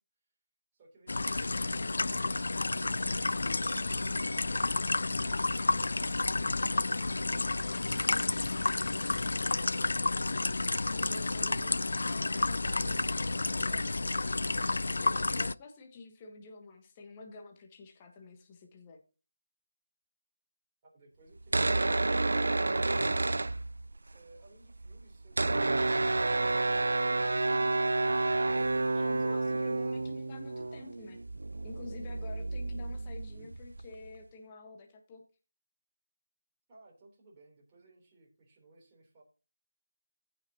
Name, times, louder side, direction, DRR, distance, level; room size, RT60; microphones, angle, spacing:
voice 1, 0.7-4.5 20.8-22.1 22.5-23.5 24.1-26.7 36.7-39.2, right 2 dB, 20° right, -3 dB, 3.3 m, -60 dB
sound 1, 1.1-15.5, left 3 dB, 65° left, 0.3 m, -31 dB
Coin (dropping), 3.5-5.3 5.9-6.0 6.7-6.8 7.0-9.0, left 2 dB, 85° left, 0.7 m, -47 dB
voice 2, 10.9-14.4 15.0-19.0 28.9-31.2 31.6-35.2, left 3 dB, 20° left, 3 dB, 1.3 m, -49 dB
sound 2, 21.4-24.1 24.4-24.5 24.6-34.1, right 2 dB, 75° right, 0.3 m, -30 dB
15.0 x 5.9 x 2.9 m, 0.33 s
figure-of-eight pair, 165°, 0 cm